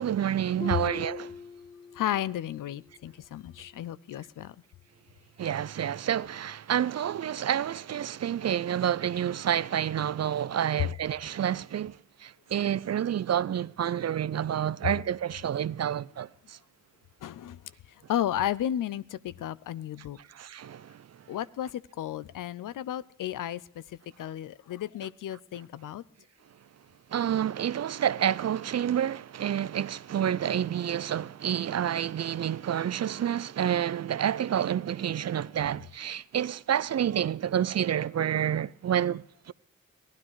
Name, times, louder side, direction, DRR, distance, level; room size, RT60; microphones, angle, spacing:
voice 1, 0.0-1.3 5.4-16.6 20.4-21.0 27.1-39.5, right 10 dB, 55° right, 0.5 m, -29 dB
Harp, 0.6-2.4 2.7-3.1 3.7-3.8, left 5 dB, 25° left, 0.7 m, -40 dB
voice 2, 1.9-4.6 10.8-10.9 17.2-20.2 21.3-26.0, left 11 dB, 85° left, 0.5 m, -33 dB
16.0 x 11.5 x 4.7 m
cardioid pair, 45°, 31 cm